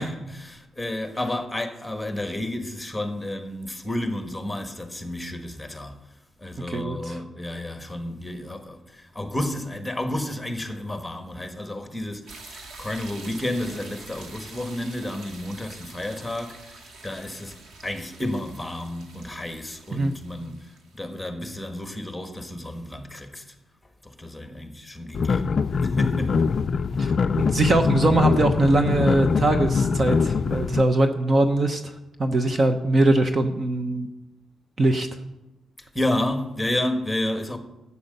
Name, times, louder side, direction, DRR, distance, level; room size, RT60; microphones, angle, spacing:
voice 1, 0.0-6.0 6.4-17.6 17.8-23.5 24.0-26.5 35.8-37.6, left 1 dB, 5° left, 1.4 m, -31 dB
voice 2, 6.7-7.2 19.9-20.1 27.0-27.1 27.4-31.9 32.2-34.1 34.8-35.1, right 2 dB, 35° right, 0.9 m, -21 dB
sound 1, 12.3-21.1, right 3 dB, 75° right, 2.1 m, -46 dB
sound 2, 25.1-30.8, left 5 dB, 45° left, 0.4 m, -23 dB
13.0 x 8.4 x 6.7 m
cardioid pair, 125°, 0 cm